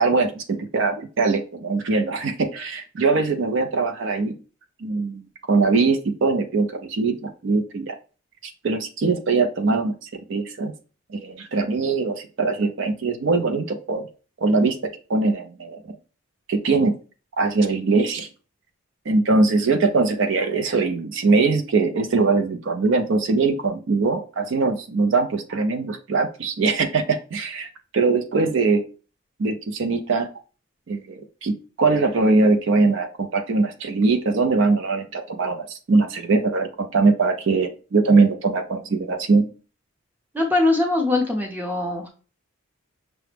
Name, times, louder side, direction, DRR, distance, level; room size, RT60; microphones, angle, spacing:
voice 1, 0.0-4.3 4.8-7.9 8.4-10.7 11.1-14.0 14.4-15.8 16.5-16.9 17.4-18.3 19.1-27.7 27.9-28.8 29.4-30.3 30.9-39.5, right 3 dB, 55° right, 7 dB, 0.4 m, -21 dB
voice 2, 40.3-42.1, left 2 dB, 10° right, 3 dB, 0.6 m, -22 dB
5.7 x 2.0 x 3.2 m, 0.37 s
head